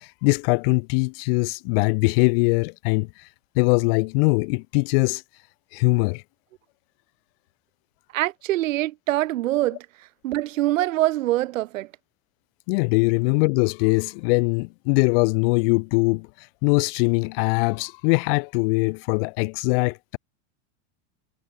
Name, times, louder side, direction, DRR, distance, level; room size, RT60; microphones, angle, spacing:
voice 1, 0.0-3.3 3.5-5.2 5.7-6.2 12.7-20.2, left 31 dB, 45° left, 1.0 m, -22 dB
voice 2, 8.1-9.9 10.2-11.9, right 15 dB, 85° right, 0.9 m, -24 dB
supercardioid pair, 145°, 38 cm